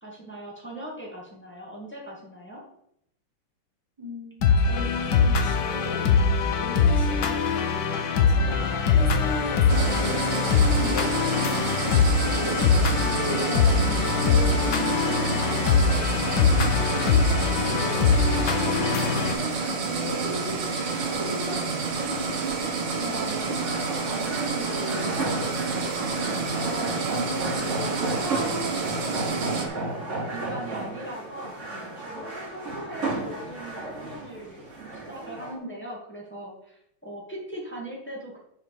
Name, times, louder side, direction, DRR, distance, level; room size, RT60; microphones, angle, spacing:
voice 1, 0.0-2.6 22.6-23.5 26.5-29.6 30.3-31.5 31.9-34.6 35.1-38.4, right 1 dB, 5° left, -3 dB, 1.9 m, -39 dB
voice 2, 4.0-6.1 6.5-23.1 23.4-23.5 24.0-25.9, left 1 dB, 15° right, -5 dB, 4.2 m, -37 dB
sound 1, 4.4-19.3, left 5 dB, 60° left, 1.4 m, -22 dB
sound 2, 9.7-29.7, right 4 dB, 60° right, 2.0 m, -29 dB
sound 3, 21.8-35.5, right 2 dB, 35° right, 3.4 m, -34 dB
10.5 x 4.9 x 4.9 m, 0.75 s
omnidirectional pair, 2.4 m